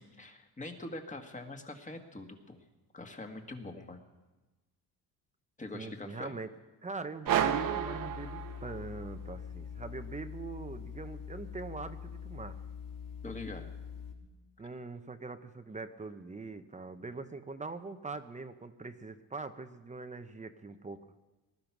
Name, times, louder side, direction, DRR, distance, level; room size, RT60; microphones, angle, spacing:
voice 1, 0.0-2.6 2.9-4.0 5.6-6.3 13.2-13.7, left 2 dB, 20° left, 5 dB, 1.8 m, -44 dB
voice 2, 5.7-6.5 6.8-12.6 14.6-21.0, right 3 dB, 20° right, 9 dB, 0.8 m, -42 dB
sound 1, 7.2-9.0, right 9 dB, 60° right, 1.1 m, -31 dB
sound 2, 7.3-14.1, left 7 dB, 60° left, 3.0 m, -44 dB
20.0 x 12.0 x 6.0 m, 1.2 s
cardioid pair, 110°, 37 cm